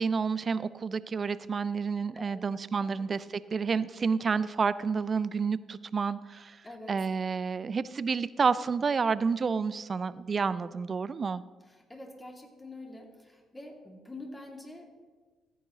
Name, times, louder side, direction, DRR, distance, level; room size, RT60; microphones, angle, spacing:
voice 1, 0.0-6.6 6.9-11.4, right 5 dB, 40° right, 17 dB, 0.4 m, -29 dB
voice 2, 11.7-14.8, left 2 dB, 15° left, 1 dB, 2.5 m, -46 dB
15.0 x 10.0 x 3.1 m, 1.4 s
figure-of-eight pair, 45°, 0 cm